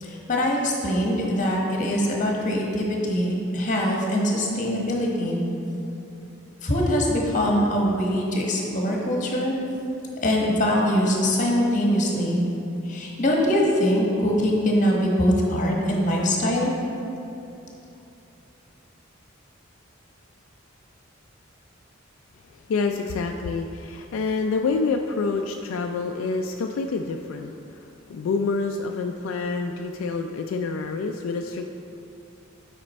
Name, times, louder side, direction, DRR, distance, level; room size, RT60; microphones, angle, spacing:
voice 1, 0.0-5.4 6.6-9.5 10.2-12.4 12.9-16.7, equal, 40° left, -1 dB, 1.1 m, -23 dB
voice 2, 22.7-27.8 28.1-31.6, left 4 dB, 75° left, 4 dB, 0.3 m, -27 dB
8.5 x 5.0 x 4.2 m, 2.8 s
head